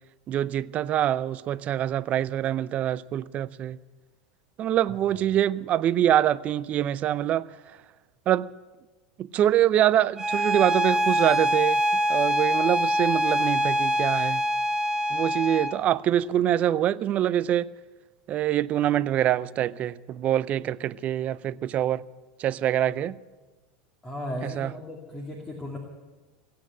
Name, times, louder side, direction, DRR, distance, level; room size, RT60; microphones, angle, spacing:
voice 1, 0.3-3.8 4.6-7.8 8.3-8.5 9.2-11.8 12.1-14.4 15.1-17.7 18.3-22.0 22.4-23.2 24.4-24.7, right 11 dB, 40° right, 0.5 m, -25 dB
Bowed string instrument, 10.2-15.8, equal, 15° right, 1.2 m, -24 dB
voice 2, 24.0-25.8, left 1 dB, 20° left, 2.6 m, -36 dB
17.0 x 8.7 x 8.9 m
hypercardioid pair, 100°, 4 cm